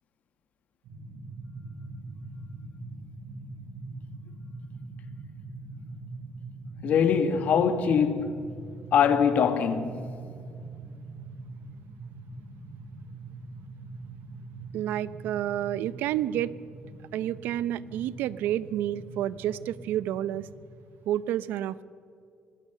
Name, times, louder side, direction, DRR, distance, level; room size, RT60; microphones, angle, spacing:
sound 1, 0.8-20.6, right 3 dB, 70° right, 6.6 m, -43 dB
voice 1, 6.8-8.4 8.9-10.1, left 7 dB, 50° left, 1.6 m, -23 dB
voice 2, 14.7-16.5 17.1-20.5 21.1-21.8, right 12 dB, 90° right, 0.7 m, -29 dB
24.0 x 19.0 x 6.7 m
cardioid pair, 170°, 3 cm